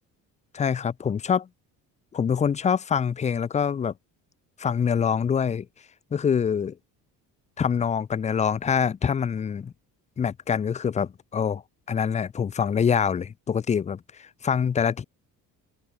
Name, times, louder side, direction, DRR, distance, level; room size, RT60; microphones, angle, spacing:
voice 1, 0.5-1.4 2.1-3.9 4.6-5.7 6.1-6.8 7.6-9.7 10.2-11.6 11.9-15.0, left 7 dB, 15° left, 0.3 m, -25 dB
open air
hypercardioid pair, 60°, 50 cm